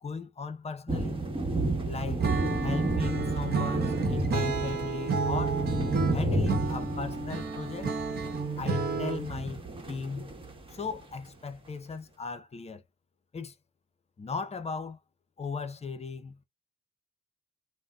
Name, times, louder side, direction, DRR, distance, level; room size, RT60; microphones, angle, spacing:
voice 1, 0.0-1.2 1.8-2.3 2.6-5.6 6.1-8.0 8.6-10.4 10.7-12.8 13.3-13.5 14.2-15.0 15.4-16.4, left 4 dB, 30° left, 0.7 m, -37 dB
sound 1, 0.9-11.0, right 2 dB, 25° right, 1.2 m, -32 dB
Acoustic guitar / Strum, 2.2-9.4, right 4 dB, 55° right, 1.0 m, -31 dB
3.8 x 2.1 x 2.3 m
cardioid pair, 90°, 20 cm